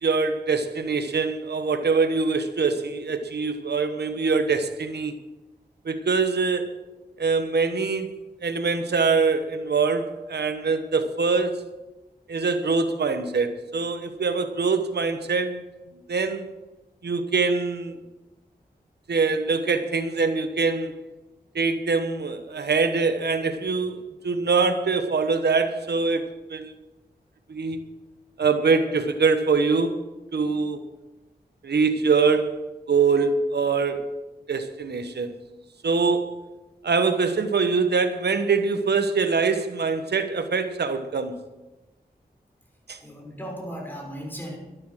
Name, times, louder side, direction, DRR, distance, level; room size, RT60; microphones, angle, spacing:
voice 1, 0.0-5.1 5.8-6.7 7.2-11.6 12.3-15.6 16.1-16.5 17.0-18.0 19.1-21.0 21.5-26.7 27.5-27.8 28.4-30.0 30.3-30.8 31.6-32.6 32.9-34.1 34.5-35.4 35.8-36.3 36.8-41.4 42.9-43.0, right 4 dB, 90° right, 9 dB, 1.0 m, -24 dB
voice 2, 43.0-44.6, equal, 10° left, 0 dB, 5.7 m, -36 dB
11.5 x 11.5 x 6.2 m, 1.1 s
cardioid pair, 50°, 17 cm